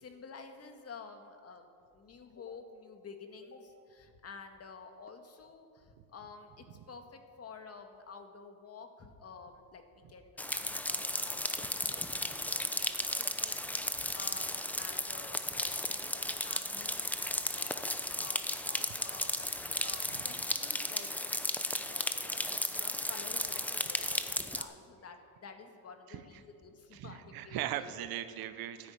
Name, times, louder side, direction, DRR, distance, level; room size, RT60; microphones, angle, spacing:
voice 1, 0.0-9.8 10.1-13.1 13.3-21.1 21.7-27.9, left 5 dB, 40° left, 5 dB, 2.0 m, -51 dB
sound 1, 10.4-24.6, left 1 dB, 5° left, 0.8 m, -35 dB
voice 2, 26.9-28.9, right 12 dB, 65° right, 11 dB, 1.0 m, -38 dB
13.0 x 10.5 x 8.9 m, 2.3 s
supercardioid pair, 95°, 39 cm